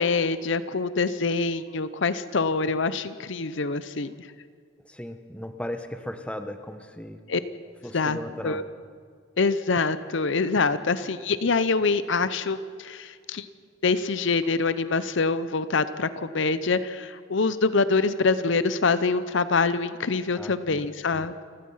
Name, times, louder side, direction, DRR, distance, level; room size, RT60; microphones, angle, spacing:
voice 1, 0.0-4.1 7.3-7.4 7.9-8.2 8.4-8.6 9.4-13.5 13.8-21.4, left 4 dB, 60° left, 14 dB, 0.7 m, -25 dB
voice 2, 4.8-7.2 7.8-8.6 20.3-20.8, left 1 dB, 5° left, 8 dB, 1.0 m, -36 dB
29.0 x 16.0 x 5.6 m, 2.1 s
head